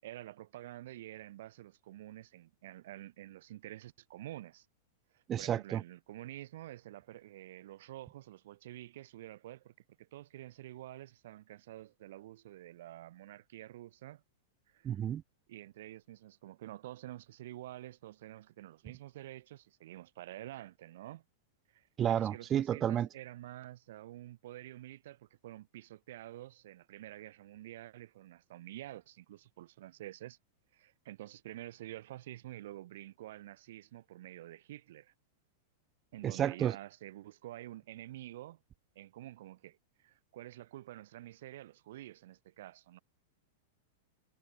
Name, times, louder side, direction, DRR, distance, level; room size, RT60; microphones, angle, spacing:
voice 1, 0.0-4.7 5.1-14.2 14.7-15.1 15.5-21.2 21.7-30.4 30.7-35.1 36.1-38.6 39.0-43.0, right 14 dB, 60° right, 6.8 m, -49 dB
voice 2, 5.3-5.8 14.8-15.2 22.0-23.1 36.2-36.7, right 10 dB, 30° right, 1.6 m, -31 dB
hypercardioid pair, 100°, 0 cm